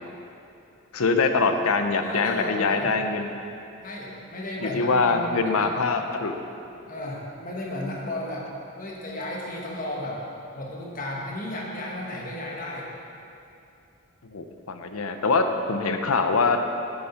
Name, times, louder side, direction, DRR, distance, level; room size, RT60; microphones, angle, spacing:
voice 1, 0.9-3.3 4.6-6.3 14.3-16.6, left 4 dB, 80° left, 6 dB, 0.7 m, -23 dB
voice 2, 2.0-2.9 3.8-5.7 6.9-8.5 8.8-10.2 10.5-12.9, left 1 dB, 40° left, -2 dB, 1.4 m, -34 dB
8.7 x 6.9 x 5.7 m, 2.7 s
head